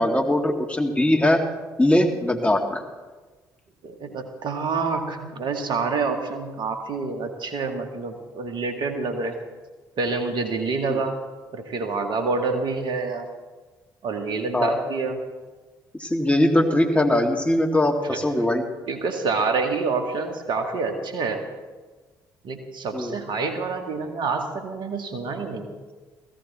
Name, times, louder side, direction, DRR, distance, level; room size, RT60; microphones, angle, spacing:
voice 1, 0.0-1.4 1.8-2.8 10.9-11.0 14.5-14.8 16.0-18.6 22.9-23.2, left 1 dB, 15° left, 3 dB, 2.2 m, -21 dB
voice 2, 3.8-9.4 10.0-11.2 11.5-13.3 14.0-15.2 18.1-18.2 18.9-21.4 22.4-25.7, right 4 dB, 55° right, 5 dB, 2.1 m, -27 dB
16.0 x 16.0 x 4.3 m, 1.3 s
hypercardioid pair, 50°, 10 cm